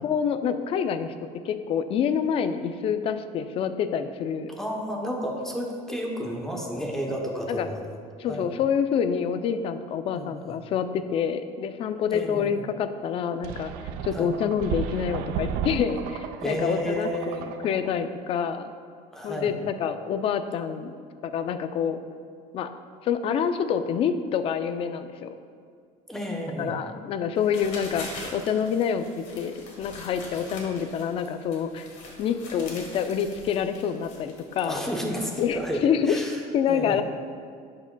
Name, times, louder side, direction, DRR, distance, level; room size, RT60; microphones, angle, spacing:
voice 1, 0.0-1.1 1.4-4.5 7.5-7.7 8.2-13.7 14.0-18.7 19.2-20.9 21.2-22.0 22.5-22.7 23.0-25.3 26.6-31.9 32.2-34.8 35.4-36.2 36.5-37.0, left 7 dB, 40° left, 10 dB, 0.4 m, -27 dB
voice 2, 4.6-8.0 8.3-8.6 10.1-10.6 12.1-12.5 14.1-14.3 16.4-17.4 19.1-19.6 26.1-26.8 34.6-36.4 36.7-37.0, equal, 5° left, 0 dB, 0.8 m, -31 dB
sound 1, 13.4-18.0, right 8 dB, 75° right, 0.4 m, -34 dB
sound 2, 27.4-35.6, left 2 dB, 55° left, 1.4 m, -43 dB
11.0 x 4.8 x 2.2 m, 2.2 s
cardioid pair, 140°, 15 cm